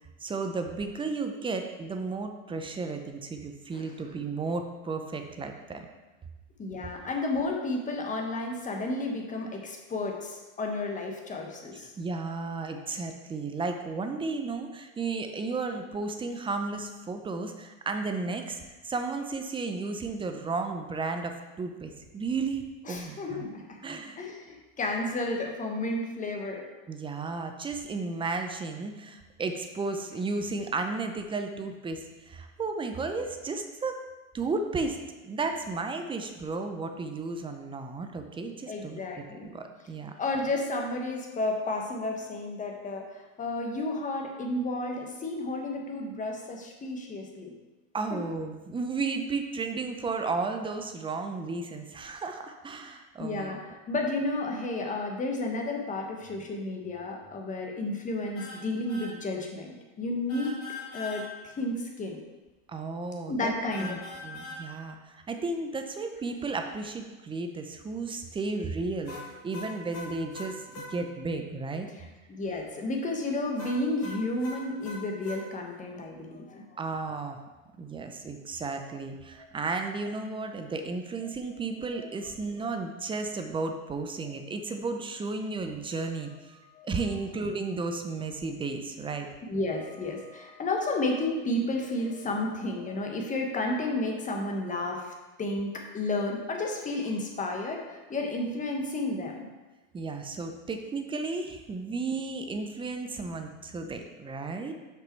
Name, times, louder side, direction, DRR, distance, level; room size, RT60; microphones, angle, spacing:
voice 1, 0.2-5.9 12.0-23.5 23.8-24.2 26.9-34.0 34.3-35.0 35.2-40.1 47.9-53.5 62.7-63.5 63.8-69.2 69.4-70.6 70.9-71.9 76.8-77.4 77.8-89.3 99.9-104.7, right 3 dB, 15° right, 5 dB, 0.6 m, -33 dB
voice 2, 6.6-11.9 22.9-23.8 24.2-26.6 38.7-39.5 40.2-47.5 48.1-48.2 53.2-60.5 60.9-62.2 63.3-64.0 72.3-76.8 86.7-86.9 89.5-95.1 95.4-99.5, left 2 dB, 20° left, 1 dB, 1.2 m, -32 dB
sound 1, 58.3-58.6 58.9-59.1 60.3-61.2 63.7-64.6 69.1-70.9 73.6-75.4, left 3 dB, 35° left, 2.3 m, -41 dB
6.1 x 5.2 x 4.5 m, 1.2 s
supercardioid pair, 115°, 40 cm